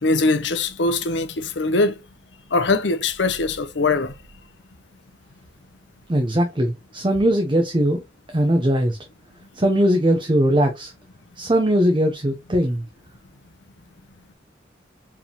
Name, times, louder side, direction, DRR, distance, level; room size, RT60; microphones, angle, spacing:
voice 1, 0.0-2.0 2.5-4.1, left 3 dB, 75° left, 0.7 m, -21 dB
voice 2, 6.1-8.0 8.3-9.0 9.6-10.9 11.4-12.8, equal, 25° right, 0.7 m, -20 dB
4.7 x 3.5 x 2.9 m
head